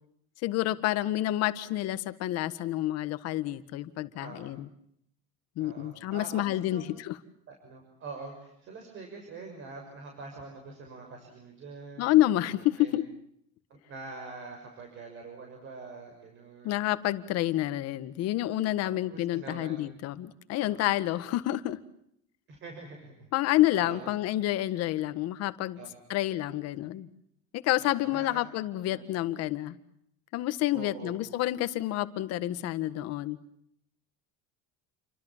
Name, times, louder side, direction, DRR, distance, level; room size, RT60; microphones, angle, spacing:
voice 1, 0.4-4.7 5.6-7.2 12.0-13.0 16.6-21.8 23.3-25.8 26.1-27.1 27.6-29.8 30.3-33.4, left 15 dB, 50° left, 12 dB, 1.8 m, -29 dB
voice 2, 4.2-4.6 5.6-6.8 7.5-13.0 13.9-16.9 18.7-19.8 20.5-20.9 22.5-23.3 23.8-24.1 25.8-26.2 27.8-28.4 28.8-29.1 30.7-31.2, right 3 dB, 35° right, 3 dB, 6.5 m, -45 dB
30.0 x 24.5 x 7.4 m, 0.71 s
cardioid pair, 165°, 32 cm